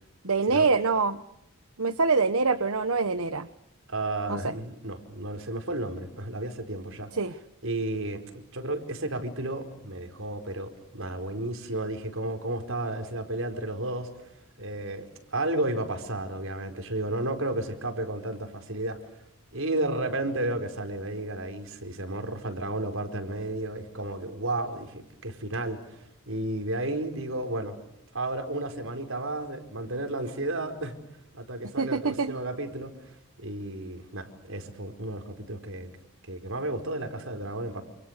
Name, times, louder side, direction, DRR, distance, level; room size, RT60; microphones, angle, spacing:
voice 1, 0.2-1.2 1.8-3.5 4.3-4.5 7.2-7.3 31.8-32.3, right 4 dB, 90° right, 11 dB, 1.2 m, -25 dB
voice 2, 3.9-7.1 7.6-14.1 14.6-19.2 19.5-27.8 28.1-30.9 31.3-35.9 36.2-37.8, right 2 dB, 70° right, 7 dB, 4.7 m, -33 dB
28.5 x 28.5 x 6.8 m, 0.83 s
head